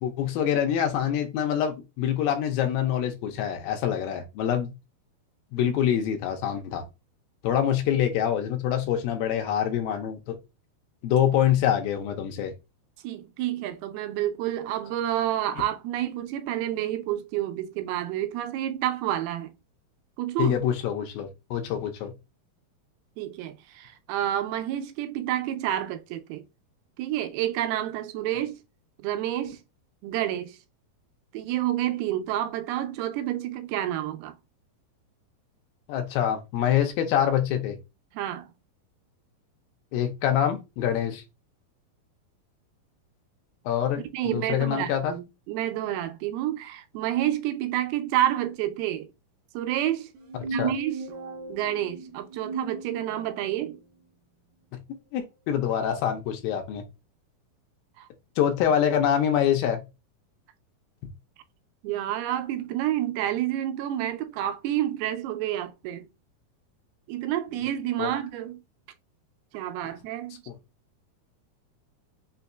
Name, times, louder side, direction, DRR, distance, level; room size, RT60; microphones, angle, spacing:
voice 1, 0.0-4.7 5.5-6.8 7.4-10.4 11.0-12.5 20.4-22.1 35.9-37.8 39.9-41.2 43.7-45.1 50.6-50.7 55.1-56.8 58.4-59.8 67.5-67.6 68.0-68.1 70.5-70.6, left 9 dB, 80° left, 2.4 m, -25 dB
voice 2, 13.0-19.5 20.2-20.6 23.2-26.4 27.0-28.6 29.0-29.6 30.0-30.6 31.3-34.4 38.1-38.5 44.1-49.1 49.5-50.1 50.5-51.0 51.5-53.8 58.0-58.1 61.8-66.1 67.1-68.6 69.5-70.4, right 12 dB, 90° right, 2.5 m, -29 dB
sound 1, 50.1-53.6, right 2 dB, 70° right, 2.4 m, -36 dB
5.8 x 2.7 x 2.3 m
omnidirectional pair, 4.4 m